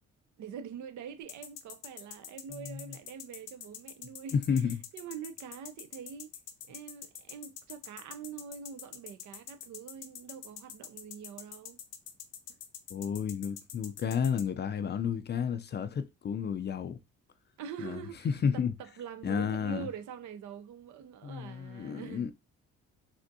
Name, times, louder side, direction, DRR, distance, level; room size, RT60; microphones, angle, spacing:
voice 1, 0.4-4.5 4.9-6.3 6.7-11.8 17.6-18.3 18.5-22.3, right 7 dB, 75° right, 0.5 m, -44 dB
sound 1, 1.3-14.4, left 9 dB, 80° left, 0.7 m, -45 dB
voice 2, 2.5-2.9 4.3-4.8 12.9-17.0 17.8-18.7 19.2-19.9 21.2-22.3, left 7 dB, 35° left, 0.4 m, -32 dB
3.4 x 2.5 x 2.6 m
cardioid pair, 90°, 30 cm